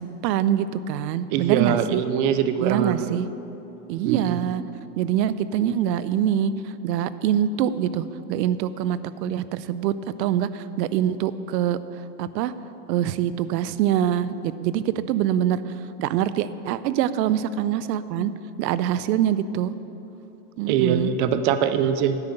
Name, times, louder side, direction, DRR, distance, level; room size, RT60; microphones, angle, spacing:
voice 1, 0.0-2.0 2.6-3.3 3.9-4.6 5.0-6.5 6.8-9.9 10.2-11.8 12.2-12.5 12.9-15.6 16.0-18.3 18.6-19.7 20.6-21.1, right 10 dB, 90° right, 15 dB, 0.6 m, -24 dB
voice 2, 1.3-3.2 4.0-4.4 20.7-22.2, right 8 dB, 35° right, 11 dB, 0.4 m, -23 dB
10.0 x 5.8 x 7.8 m, 2.9 s
supercardioid pair, 150°, 49 cm